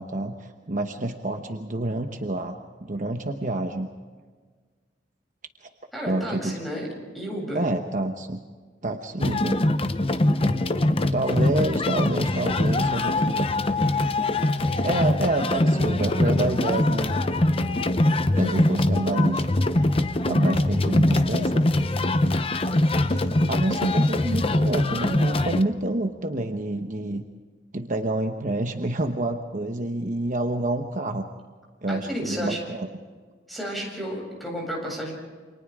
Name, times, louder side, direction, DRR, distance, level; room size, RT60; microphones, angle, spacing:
voice 1, 0.0-3.9 5.6-5.7 6.1-6.6 7.5-8.4 8.8-9.6 11.1-13.5 14.8-17.2 18.4-19.5 19.8-19.9 20.3-21.7 23.1-27.2 27.7-31.3 31.8-32.9, right 2 dB, 45° right, 5 dB, 1.1 m, -28 dB
voice 2, 5.9-6.9 7.1-7.7 31.9-32.6 33.5-35.1, equal, ahead, -2 dB, 7.9 m, -32 dB
sound 1, 9.2-25.6, left 1 dB, 30° left, 0.8 m, -23 dB
29.5 x 26.5 x 3.7 m, 1.5 s
head